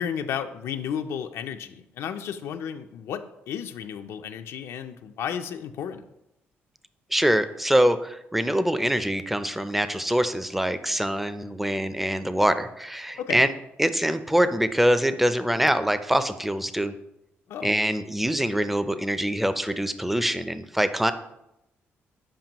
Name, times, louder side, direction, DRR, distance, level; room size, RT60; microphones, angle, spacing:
voice 1, 0.0-6.1 13.2-13.4 17.5-17.7, left 8 dB, 75° left, 7 dB, 0.4 m, -33 dB
voice 2, 7.1-13.5 13.8-16.9 17.6-21.1, equal, 5° right, 11 dB, 0.4 m, -24 dB
7.4 x 5.1 x 2.9 m, 0.86 s
cardioid pair, 100°, 5 cm